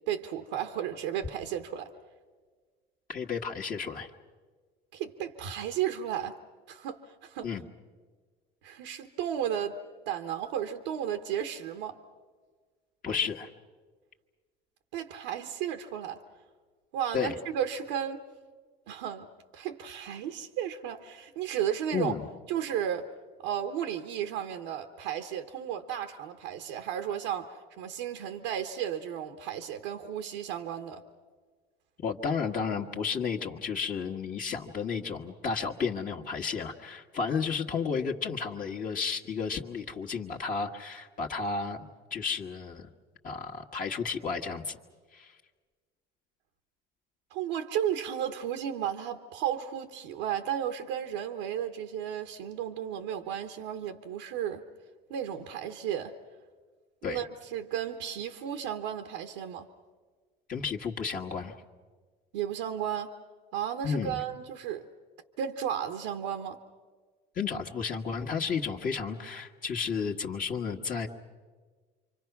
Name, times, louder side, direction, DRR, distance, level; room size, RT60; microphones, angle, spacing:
voice 1, 0.1-1.9 4.9-6.4 6.7-7.5 8.6-12.0 14.9-16.2 16.9-18.2 18.9-22.2 22.5-23.1 23.4-31.0 47.3-54.6 55.1-56.1 57.1-59.7 62.3-63.1 63.5-64.9 65.4-66.6, right 9 dB, 90° right, 1.2 m, -34 dB
voice 2, 3.1-4.1 7.4-7.6 13.0-13.5 17.1-17.3 21.9-22.2 32.0-42.9 43.2-44.8 45.1-45.3 57.0-57.2 60.5-61.5 63.8-64.2 67.3-71.1, left 5 dB, 45° left, 1.5 m, -32 dB
28.0 x 24.5 x 6.0 m
supercardioid pair, 95°, 20 cm